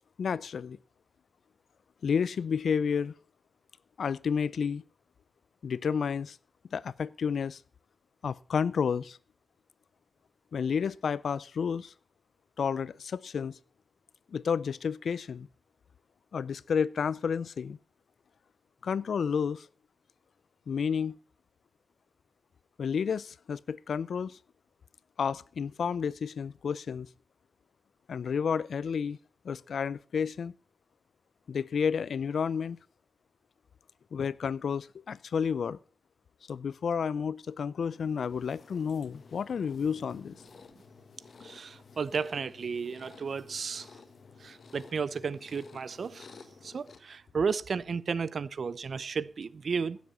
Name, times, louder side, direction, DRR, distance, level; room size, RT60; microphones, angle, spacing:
voice 1, 0.2-0.8 2.0-3.1 4.0-4.8 5.6-6.4 6.7-7.6 8.2-9.2 10.5-11.9 12.6-13.6 14.3-15.5 16.3-17.8 18.8-19.7 20.7-21.2 22.8-24.4 25.2-27.1 28.1-29.2 29.4-30.5 31.5-32.8 34.1-35.8 36.5-40.4, left 6 dB, 90° left, 0.5 m, -31 dB
sound 1, 37.9-47.0, left 4 dB, 70° left, 1.4 m, -53 dB
voice 2, 41.4-43.9 44.4-46.3 46.6-50.0, right 5 dB, 70° right, 0.6 m, -33 dB
16.5 x 7.2 x 5.5 m
wide cardioid pair, 100°, 0 cm